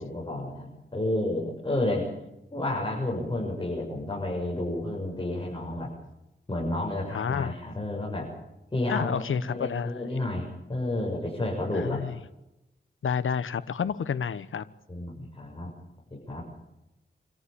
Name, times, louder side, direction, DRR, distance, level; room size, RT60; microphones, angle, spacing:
voice 1, 0.0-2.1 2.5-5.9 6.5-8.3 8.7-12.0 14.9-15.7 16.1-16.4, left 1 dB, 25° left, -3 dB, 7.5 m, -31 dB
voice 2, 7.1-7.5 8.9-10.2 11.7-12.1 13.0-14.6, left 7 dB, 80° left, 14 dB, 1.1 m, -30 dB
27.0 x 14.5 x 8.7 m, 0.93 s
cardioid pair, 65°, 20 cm